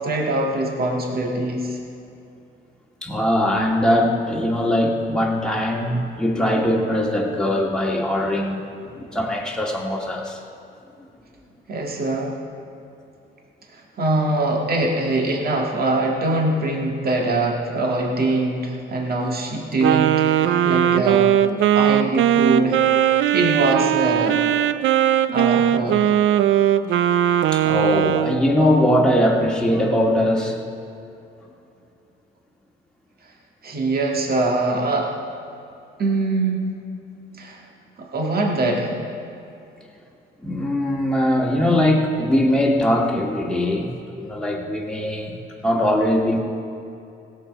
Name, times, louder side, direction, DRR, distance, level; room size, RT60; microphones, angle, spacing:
voice 1, 0.0-1.8 11.7-12.4 13.7-21.3 21.7-24.4 25.3-26.1 33.6-35.1 36.0-36.7 37.4-37.6 38.0-39.0, right 2 dB, 50° right, 0 dB, 1.9 m, -23 dB
voice 2, 3.0-8.6 8.9-10.4 27.5-30.6 40.4-43.9 44.2-45.4 45.6-46.4, left 1 dB, 5° left, -2 dB, 2.0 m, -21 dB
Wind instrument woodwind instrument, 19.8-28.4, right 11 dB, 75° right, 0.5 m, -19 dB
16.5 x 7.4 x 5.3 m, 2.7 s
cardioid pair, 90°, 20 cm